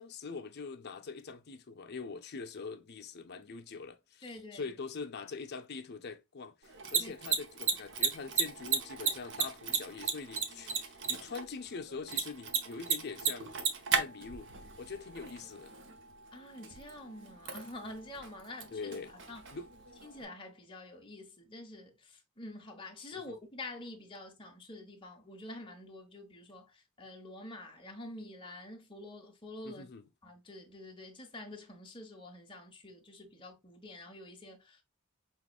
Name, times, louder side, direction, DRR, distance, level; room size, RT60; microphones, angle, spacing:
voice 1, 0.0-13.6 13.9-14.5 14.8-15.7 18.7-19.1 19.5-19.7 23.1-23.2 29.6-30.0, left 4 dB, 50° left, 0.7 m, -43 dB
voice 2, 4.2-4.7 7.0-7.4 16.3-19.4 20.0-29.9 30.2-34.8, left 2 dB, 25° left, 1.2 m, -47 dB
Mechanisms, 6.6-20.2, right 6 dB, 60° right, 0.9 m, -36 dB
5.8 x 3.1 x 2.4 m
head